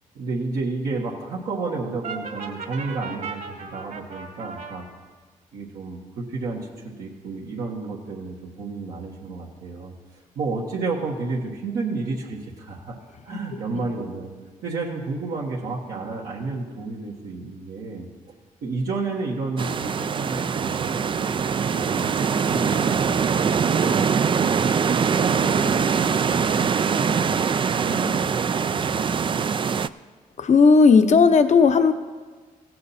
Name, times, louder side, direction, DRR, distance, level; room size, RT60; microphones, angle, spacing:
voice 1, 0.1-4.8 5.5-9.9 10.3-13.0 13.2-14.3 14.6-18.1 18.6-21.3 21.7-24.5 25.1-27.4 27.7-29.4, right 3 dB, 80° right, -5 dB, 1.5 m, -31 dB
Brass instrument, 2.0-4.8, right 4 dB, 60° right, 2.3 m, -36 dB
sound 1, 19.6-29.9, right 6 dB, 35° right, 0.3 m, -23 dB
voice 2, 30.4-31.9, left 5 dB, 50° left, 8 dB, 0.9 m, -15 dB
16.5 x 7.6 x 4.2 m, 1.4 s
supercardioid pair, 55°, 15 cm